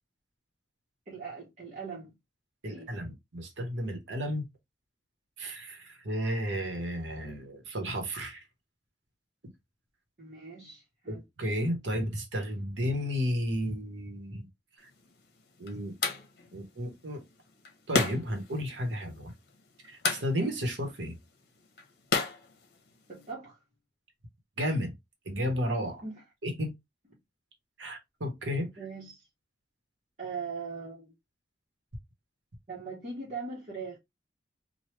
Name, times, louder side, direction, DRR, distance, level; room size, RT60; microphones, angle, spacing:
voice 1, 1.1-2.1 2.6-2.9 10.2-11.2 23.1-23.6 26.0-26.2 28.8-29.2 30.2-31.1 32.7-34.0, right 4 dB, 40° right, 1.0 m, -40 dB
voice 2, 2.6-4.5 5.4-8.4 11.1-14.5 15.6-15.9 16.5-17.2 17.9-19.3 19.9-21.2 24.6-24.9 25.3-26.0 26.4-26.7 27.8-28.7, equal, 90° right, 1.0 m, -33 dB
sound 1, 14.8-23.3, left 4 dB, 55° left, 0.8 m, -36 dB
3.1 x 2.2 x 3.2 m
head